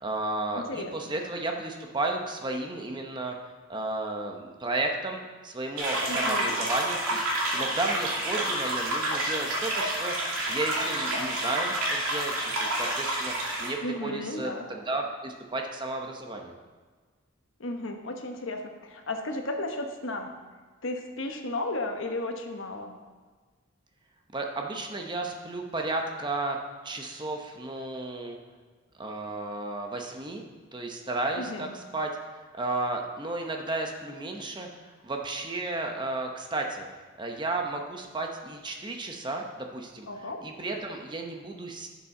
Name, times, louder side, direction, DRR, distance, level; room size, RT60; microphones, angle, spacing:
voice 1, 0.0-3.3 3.7-7.3 7.5-12.3 12.6-13.3 13.6-16.5 24.3-26.6 26.8-28.4 29.0-30.4 30.7-34.7 35.0-36.9 37.2-40.1 40.4-41.9, right 2 dB, 20° right, 2 dB, 0.8 m, -33 dB
voice 2, 0.5-1.1 6.1-6.6 13.8-14.7 17.6-20.3 20.8-22.9 31.4-31.7 40.1-40.4, left 2 dB, 60° left, 4 dB, 1.0 m, -34 dB
sound 1, 5.8-13.7, right 1 dB, 85° right, 2.4 m, -29 dB
11.5 x 7.1 x 3.8 m, 1.4 s
head